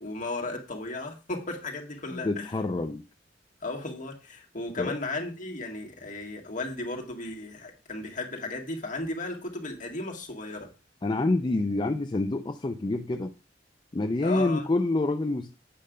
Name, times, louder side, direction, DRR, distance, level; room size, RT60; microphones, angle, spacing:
voice 1, 0.0-2.6 3.6-10.7 14.2-14.7, left 2 dB, 45° left, 0 dB, 1.9 m, -35 dB
voice 2, 2.1-3.0 4.8-4.9 11.0-13.3 13.9-15.5, left 2 dB, 25° left, 7 dB, 0.4 m, -27 dB
8.6 x 5.4 x 5.2 m, 0.33 s
head